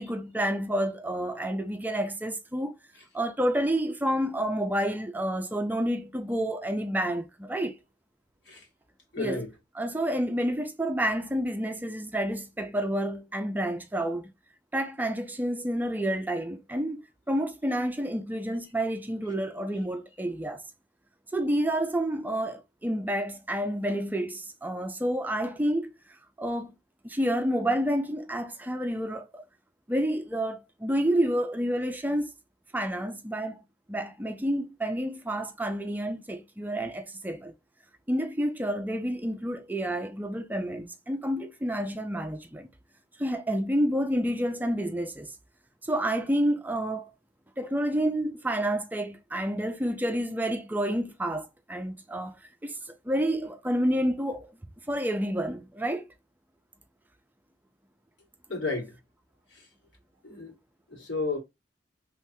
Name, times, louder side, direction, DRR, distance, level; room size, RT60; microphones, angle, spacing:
voice 1, 0.0-2.7 3.1-7.8 9.2-9.4 9.8-14.3 14.7-17.0 17.3-20.6 21.3-25.9 26.4-26.7 27.0-29.4 29.9-32.3 32.7-33.6 33.9-37.5 38.1-42.7 43.2-45.3 45.8-47.1 47.6-52.8 53.0-54.5 54.9-56.1, right 1 dB, 10° right, 0.4 m, -29 dB
voice 2, 9.1-9.5 58.5-59.0 59.5-59.7 60.2-60.5 60.9-61.4, left 3 dB, 90° left, 1.8 m, -32 dB
3.5 x 3.1 x 2.7 m
head